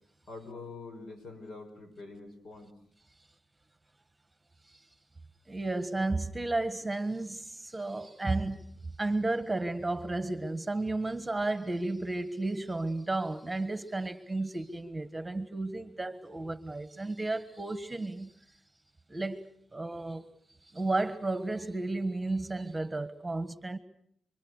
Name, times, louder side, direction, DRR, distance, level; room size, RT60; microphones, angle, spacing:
voice 1, 0.3-2.7, left 3 dB, 70° left, 5.7 m, -45 dB
voice 2, 5.5-8.6 9.0-18.3 19.1-20.2 20.6-23.8, right 2 dB, 15° right, 1.5 m, -33 dB
29.0 x 25.5 x 6.6 m
cardioid pair, 95°, 0 cm